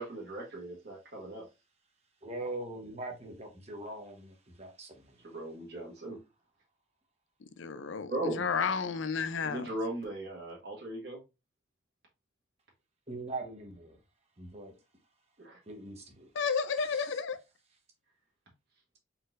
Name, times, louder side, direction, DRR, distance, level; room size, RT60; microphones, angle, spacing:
voice 1, 0.0-1.4 5.2-6.2 8.1-8.4 9.4-11.2 15.4-15.6, right 1 dB, 55° right, 1.5 m, -38 dB
voice 2, 2.2-5.2 13.1-14.0 14.4-14.7 15.7-16.3 16.8-17.1, right 2 dB, 30° right, 1.0 m, -42 dB
voice 3, 7.4-9.7 16.4-17.4, left 5 dB, 75° left, 0.5 m, -32 dB
4.2 x 3.9 x 2.5 m
head